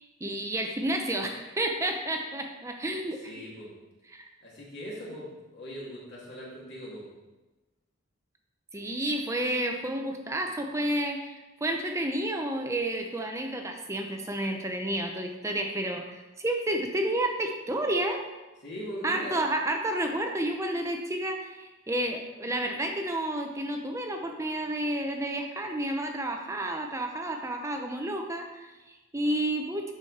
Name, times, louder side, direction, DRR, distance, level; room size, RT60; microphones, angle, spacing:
voice 1, 0.0-3.3 4.1-4.3 8.7-18.2 19.0-29.9, right 1 dB, 15° right, 3 dB, 0.6 m, -31 dB
voice 2, 3.2-3.7 4.4-7.1 18.6-19.4, equal, 50° left, -5 dB, 2.6 m, -40 dB
11.5 x 5.1 x 4.2 m, 1.1 s
head